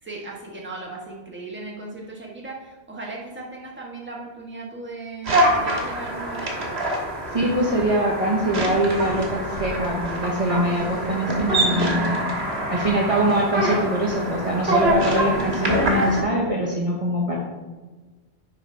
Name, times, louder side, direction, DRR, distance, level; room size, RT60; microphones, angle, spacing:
voice 1, 0.0-6.8, right 3 dB, 10° right, -3 dB, 1.3 m, -37 dB
sound 1, 5.2-16.2, right 1 dB, 70° right, 1.7 m, -25 dB
voice 2, 7.3-12.2 12.7-17.4, right 1 dB, 35° right, -4 dB, 1.1 m, -23 dB
10.0 x 4.9 x 3.4 m, 1.2 s
omnidirectional pair, 1.1 m